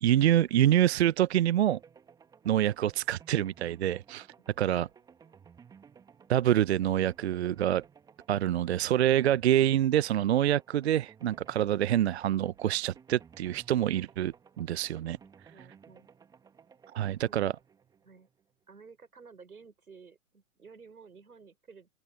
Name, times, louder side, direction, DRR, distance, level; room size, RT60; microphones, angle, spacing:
voice 1, 0.0-1.8 2.4-4.3 4.6-4.9 6.3-7.8 8.3-15.2 16.9-17.5, right 11 dB, 50° right, 0.6 m, -26 dB
sound 1, 1.7-18.6, right 6 dB, 10° right, 1.4 m, -57 dB
voice 2, 4.8-5.4 15.5-16.1 17.3-17.5 18.0-18.3 18.7-21.9, right 5 dB, 80° right, 5.9 m, -53 dB
open air
figure-of-eight pair, 130°, 44 cm